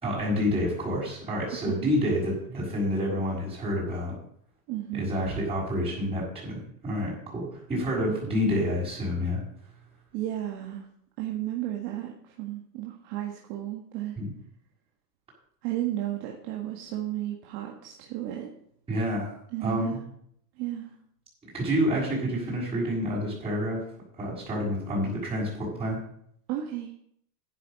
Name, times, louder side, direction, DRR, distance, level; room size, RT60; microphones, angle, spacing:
voice 1, 0.0-4.1 4.9-9.4 14.2-14.3 18.9-19.4 19.6-20.0 21.5-23.8 24.2-26.0, equal, 10° right, -6 dB, 6.1 m, -28 dB
voice 2, 4.7-5.1 8.1-8.7 10.1-10.8 11.2-14.2 15.6-18.5 19.5-20.0 20.6-20.9 26.5-27.0, right 13 dB, 45° right, 1 dB, 1.7 m, -33 dB
10.0 x 8.4 x 6.5 m, 0.69 s
supercardioid pair, 145°, 48 cm